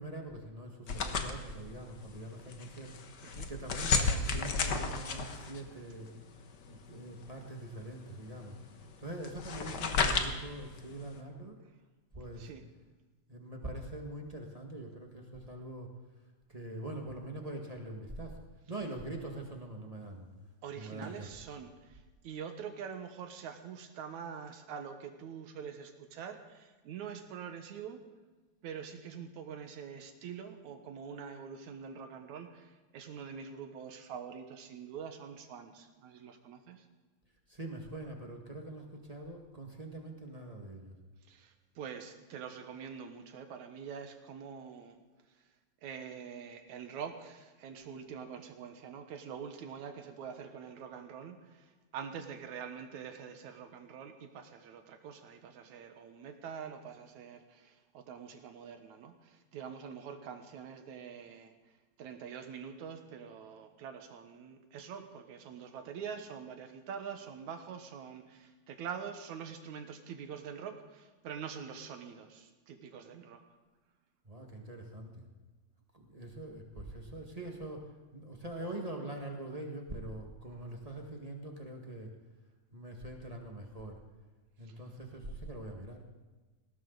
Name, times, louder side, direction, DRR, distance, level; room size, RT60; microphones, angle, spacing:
voice 1, 0.0-6.2 6.7-8.6 9.0-11.6 12.1-12.5 13.3-15.9 16.5-18.4 18.7-20.3 20.7-21.3 37.5-41.0 74.2-75.2 75.9-82.1 82.7-84.0 84.6-86.0, right 1 dB, 25° right, 1 dB, 0.8 m, -43 dB
sound 1, 0.9-11.2, left 4 dB, 70° left, 1.0 m, -35 dB
voice 2, 20.6-28.0 28.6-36.8 41.3-45.0 45.8-61.5 62.0-73.4 84.6-84.8, right 7 dB, 65° right, 7 dB, 2.4 m, -45 dB
20.0 x 17.5 x 4.0 m, 1.3 s
omnidirectional pair, 3.8 m